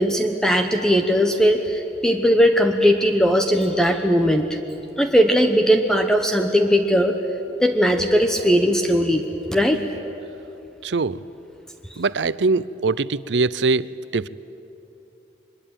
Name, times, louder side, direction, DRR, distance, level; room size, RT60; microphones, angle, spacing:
voice 1, 0.0-4.6 5.0-7.2 7.6-9.2 9.5-9.8, equal, 5° left, 5 dB, 1.0 m, -18 dB
voice 2, 10.8-11.2 12.0-13.9 14.1-14.3, right 3 dB, 75° right, 18 dB, 0.6 m, -22 dB
24.0 x 22.0 x 9.0 m, 2.9 s
head